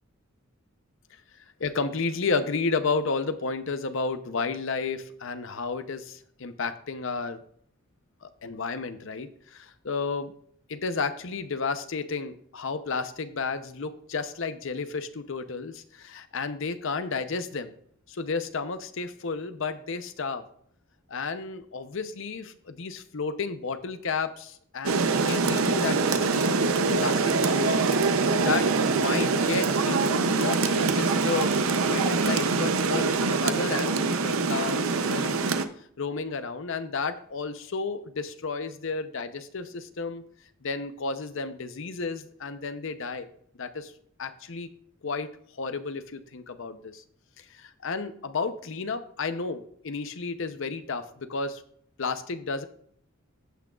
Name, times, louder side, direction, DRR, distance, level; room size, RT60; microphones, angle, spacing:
voice 1, 1.6-7.4 8.2-10.3 10.7-17.7 18.1-20.4 21.1-26.5 26.9-31.6 31.9-35.4 36.0-40.2 40.6-43.3 43.6-43.9 44.2-44.7 45.0-45.3 45.6-47.0 47.4-51.6 52.0-52.6, left 4 dB, 65° left, 10 dB, 0.7 m, -32 dB
Rain, 24.8-35.6, right 4 dB, 85° right, 0.6 m, -24 dB
15.0 x 6.1 x 2.4 m, 0.64 s
head